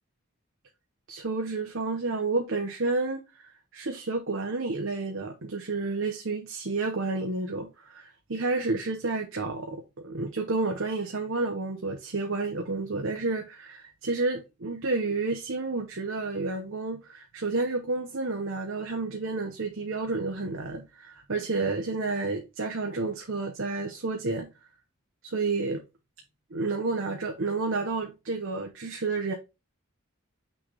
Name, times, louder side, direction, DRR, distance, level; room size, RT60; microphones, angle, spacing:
voice 1, 1.1-3.2 3.7-24.5 25.2-25.8 26.5-29.3, right 3 dB, 60° right, 0.9 m, -30 dB
6.2 x 3.4 x 4.8 m
head